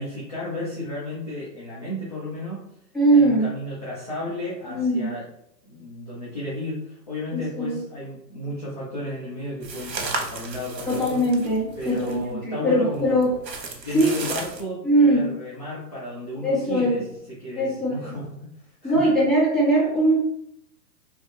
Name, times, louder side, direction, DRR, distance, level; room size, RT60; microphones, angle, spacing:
voice 1, 0.0-2.6 3.1-5.3 5.7-11.3 11.8-13.2 13.8-18.5 18.8-19.1, left 1 dB, 25° left, -7 dB, 0.4 m, -33 dB
voice 2, 2.9-3.5 4.7-5.1 7.3-7.8 10.9-13.3 13.9-14.2 14.8-15.3 16.4-17.0 17.6-18.2 18.8-20.2, right 1 dB, ahead, -11 dB, 1.0 m, -21 dB
sound 1, 9.6-12.3 12.9-14.6, right 3 dB, 80° right, 1.0 m, -34 dB
3.1 x 2.6 x 3.1 m, 0.75 s
hypercardioid pair, 145°, 50 cm